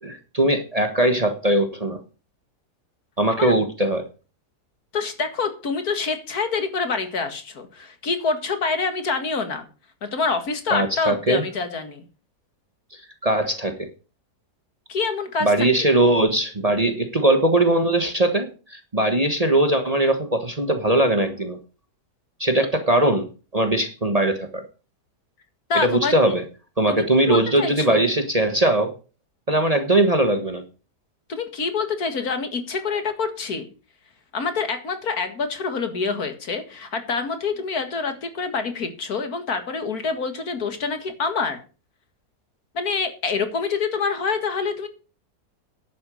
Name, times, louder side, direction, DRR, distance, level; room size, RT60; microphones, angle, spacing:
voice 1, 0.0-2.0 3.2-4.1 10.7-11.4 12.9-13.9 15.4-21.6 22.4-24.6 25.7-26.4 26.8-28.9 29.5-30.6, right 1 dB, 25° right, 7 dB, 1.3 m, -20 dB
voice 2, 4.9-9.7 10.0-12.0 14.9-15.9 25.7-26.4 26.9-28.0 31.3-33.7 34.3-41.6 42.7-44.9, left 4 dB, 65° left, 8 dB, 2.2 m, -26 dB
10.5 x 8.5 x 6.4 m, 0.35 s
omnidirectional pair, 1.7 m